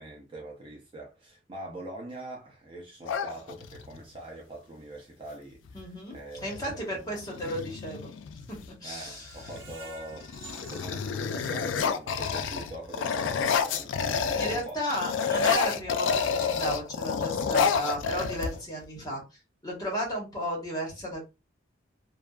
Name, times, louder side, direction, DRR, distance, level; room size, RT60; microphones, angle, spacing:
voice 1, 0.0-7.2 8.8-14.8, right 1 dB, 25° right, 0.5 m, -43 dB
sound 1, 3.0-4.0 5.7-5.8 6.1-6.6 7.2-8.7 9.3-9.7 10.1-14.6 14.9-18.8, left 6 dB, 65° left, 0.3 m, -29 dB
voice 2, 5.7-8.1 8.5-9.3 14.3-21.3, equal, 20° left, 1.2 m, -34 dB
Screech, 9.0-12.0 12.4-12.5 12.9-13.0, right 4 dB, 50° right, 0.9 m, -50 dB
2.7 x 2.3 x 2.3 m
head